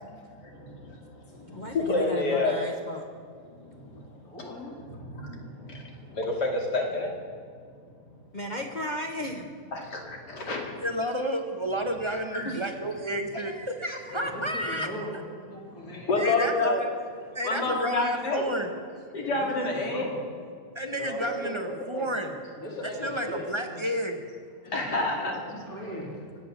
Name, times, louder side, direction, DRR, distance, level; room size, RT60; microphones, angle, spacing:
voice 1, 0.4-2.5 3.5-4.1 4.7-7.1 9.7-10.9 12.3-12.5 15.8-16.9 17.4-18.4 19.1-20.1 24.7-25.4, left 2 dB, 85° left, 0 dB, 3.1 m, -29 dB
voice 2, 1.5-3.1 8.3-9.5 12.4-12.7, left 1 dB, 30° left, 2 dB, 1.1 m, -35 dB
voice 3, 4.1-4.8 14.1-15.1 15.5-16.2 19.2-20.2 21.0-22.3 22.6-23.7 24.6-26.1, equal, 60° left, -3 dB, 4.0 m, -38 dB
voice 4, 10.8-14.9 16.2-16.8 17.3-18.7 19.6-19.7 20.7-22.3 22.8-24.2, equal, 20° right, 4 dB, 1.2 m, -31 dB
24.0 x 8.7 x 6.8 m, 2.1 s
omnidirectional pair, 1.7 m